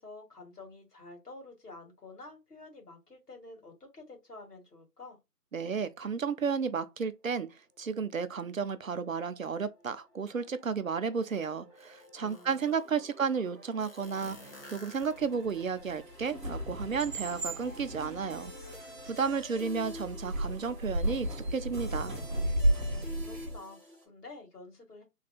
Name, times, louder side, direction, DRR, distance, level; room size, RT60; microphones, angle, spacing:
voice 1, 0.0-5.2 12.2-13.0 22.9-25.0, left 2 dB, 75° left, 2.1 m, -50 dB
voice 2, 5.5-22.2, right 5 dB, 55° right, 0.5 m, -33 dB
sound 1, 7.8-24.0, left 1 dB, 10° left, 1.1 m, -51 dB
sound 2, 11.3-11.4 11.8-12.9 13.8-15.6, left 1 dB, 35° left, 0.8 m, -52 dB
sound 3, 15.0-23.6, right 1 dB, 30° right, 1.1 m, -34 dB
3.4 x 3.3 x 2.3 m
figure-of-eight pair, 160°, 48 cm